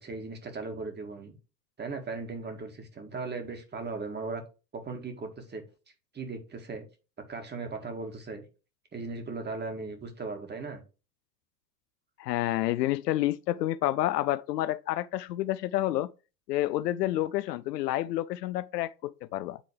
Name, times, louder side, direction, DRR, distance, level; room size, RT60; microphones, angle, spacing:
voice 1, 0.0-1.4 1.8-4.4 4.7-5.6 6.1-6.8 7.3-8.4 8.9-10.8, right 3 dB, 20° right, 1.8 m, -37 dB
voice 2, 12.2-16.1 16.5-19.6, left 15 dB, 75° left, 0.5 m, -29 dB
9.9 x 3.7 x 3.3 m
hypercardioid pair, 90°, 49 cm